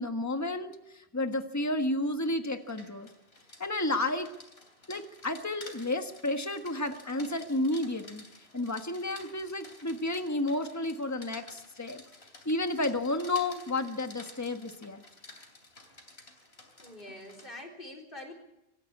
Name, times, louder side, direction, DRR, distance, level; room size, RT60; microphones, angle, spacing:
voice 1, 0.0-3.1 3.6-4.3 4.9-8.2 8.5-12.0 12.4-15.0, left 2 dB, 15° left, 6 dB, 1.4 m, -31 dB
Rain, 2.5-17.6, left 2 dB, 75° left, 3.5 m, -52 dB
voice 2, 16.8-18.3, left 1 dB, 55° left, 4 dB, 4.2 m, -45 dB
24.5 x 14.0 x 8.5 m, 0.88 s
omnidirectional pair, 1.1 m